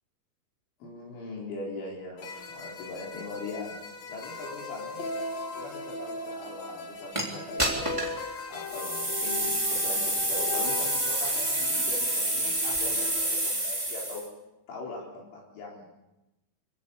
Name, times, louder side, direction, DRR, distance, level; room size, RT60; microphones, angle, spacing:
voice 1, 0.8-3.7 4.1-5.1 5.5-7.8 8.5-14.2 14.7-15.9, left 2 dB, 70° left, -3 dB, 6.4 m, -40 dB
sound 1, 2.2-13.5, left 3 dB, 45° left, 2.4 m, -38 dB
sound 2, 7.1-7.2 7.6-8.2 8.7-14.3, right 1 dB, 5° right, 2.8 m, -28 dB
25.5 x 16.5 x 8.4 m, 0.98 s
omnidirectional pair, 5.8 m